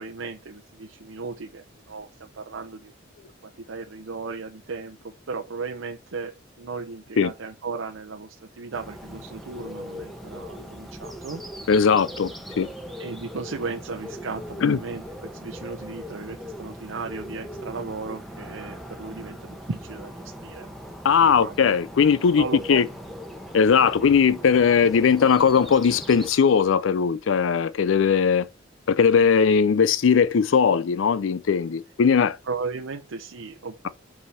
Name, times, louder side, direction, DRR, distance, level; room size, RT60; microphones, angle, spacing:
voice 1, 0.0-2.9 3.4-11.4 13.0-20.7 21.2-21.6 22.3-22.8 32.4-33.9, right 4 dB, 85° right, 0.7 m, -36 dB
Bird, 8.7-26.3, equal, ahead, 1.1 m, -39 dB
voice 2, 11.7-12.3 12.6-12.7 14.6-14.8 21.0-22.4 22.7-22.9 23.5-28.5 28.9-32.4, left 6 dB, 75° left, 0.4 m, -19 dB
5.6 x 4.9 x 5.6 m
head